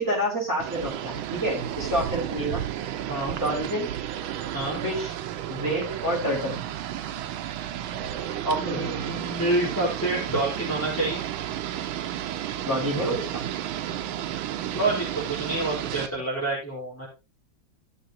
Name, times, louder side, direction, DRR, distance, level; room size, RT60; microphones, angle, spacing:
voice 1, 0.0-2.6 3.4-3.9 4.8-5.1 5.5-6.6 8.4-9.1 12.6-13.4, equal, 10° right, -4 dB, 5.4 m, -28 dB
sound 1, 0.6-16.1, right 11 dB, 90° right, 1.6 m, -32 dB
voice 2, 8.6-11.2 14.7-17.1, right 2 dB, 5° left, -8 dB, 4.0 m, -28 dB
15.5 x 6.6 x 2.9 m, 0.28 s
omnidirectional pair, 2.1 m